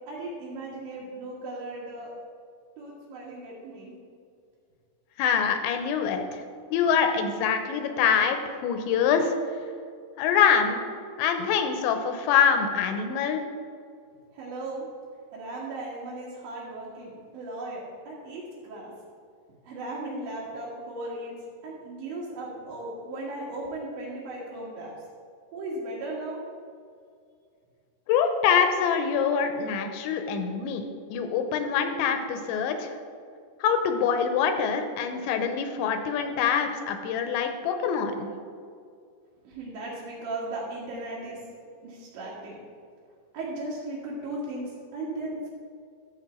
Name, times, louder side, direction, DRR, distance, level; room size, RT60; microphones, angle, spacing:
voice 1, 0.1-2.1 2.8-3.9 14.3-14.9 15.3-18.9 19.7-21.3 21.6-24.9 25.5-26.5 39.5-41.4 41.8-42.6 43.3-45.5, right 2 dB, 75° right, -7 dB, 3.9 m, -36 dB
voice 2, 5.2-6.4 6.7-9.3 10.2-10.8 11.2-13.4 28.1-32.9 33.6-38.3, left 7 dB, 85° left, 7 dB, 3.1 m, -25 dB
13.0 x 7.3 x 4.5 m, 2.3 s
omnidirectional pair, 5.3 m